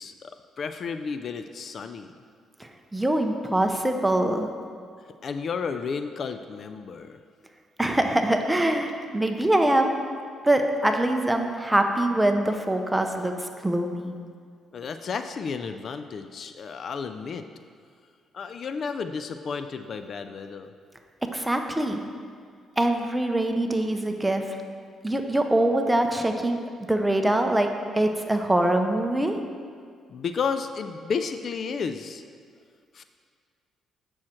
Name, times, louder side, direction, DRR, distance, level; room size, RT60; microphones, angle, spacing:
voice 1, 0.0-2.1 5.2-7.2 14.7-17.5 18.3-20.7 30.1-32.2 32.9-33.0, left 5 dB, 55° left, 9 dB, 0.3 m, -32 dB
voice 2, 2.6-4.5 7.8-10.0 10.4-14.1 21.3-22.0 22.8-24.6 25.0-29.4, right 1 dB, 10° right, 4 dB, 0.7 m, -24 dB
7.5 x 6.2 x 4.4 m, 2.1 s
cardioid pair, 90°, 0 cm